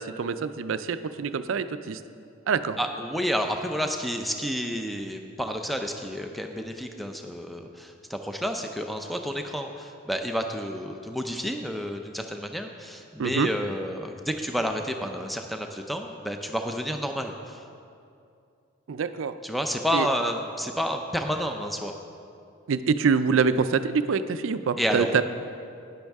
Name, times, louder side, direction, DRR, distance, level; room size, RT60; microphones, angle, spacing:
voice 1, 0.0-2.0 2.5-2.8 13.2-13.5 18.9-19.3 19.9-20.1 22.7-25.2, right 5 dB, 75° right, 12 dB, 0.4 m, -25 dB
voice 2, 2.8-17.6 19.4-21.9 24.8-25.2, equal, ahead, 4 dB, 0.5 m, -30 dB
11.5 x 10.0 x 3.5 m, 2.5 s
head